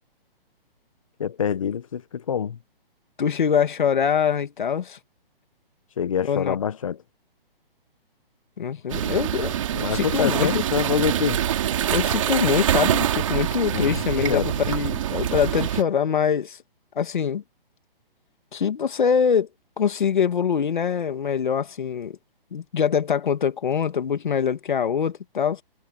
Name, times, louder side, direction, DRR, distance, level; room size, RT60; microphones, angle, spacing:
voice 1, 1.2-2.6 6.0-7.0 9.7-11.4 13.7-14.5, left 8 dB, 35° left, 0.8 m, -26 dB
voice 2, 3.2-5.0 6.2-6.6 8.6-9.6 9.9-10.6 11.9-16.6 17.0-17.4 18.5-19.5 19.8-22.2 22.5-25.6, left 7 dB, 55° left, 1.8 m, -24 dB
sound 1, 8.9-15.8, right 10 dB, 35° right, 2.8 m, -25 dB
hypercardioid pair, 175°, 29 cm